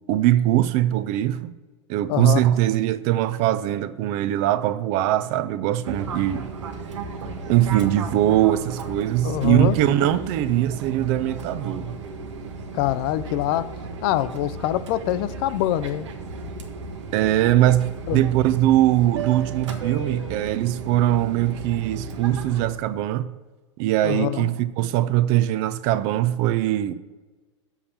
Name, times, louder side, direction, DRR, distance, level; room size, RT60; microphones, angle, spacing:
voice 1, 0.1-1.5 1.9-6.4 7.5-11.9 17.1-23.3 23.8-26.9, right 13 dB, 45° right, 0.5 m, -21 dB
voice 2, 2.1-2.4 9.2-9.8 12.7-13.7 14.0-16.1 18.1-18.2 24.0-24.5, left 13 dB, 50° left, 0.4 m, -24 dB
Fixed-wing aircraft airplane, 5.8-22.7, right 3 dB, 75° right, 1.1 m, -35 dB
7.0 x 5.5 x 7.2 m
hypercardioid pair, 100°, 16 cm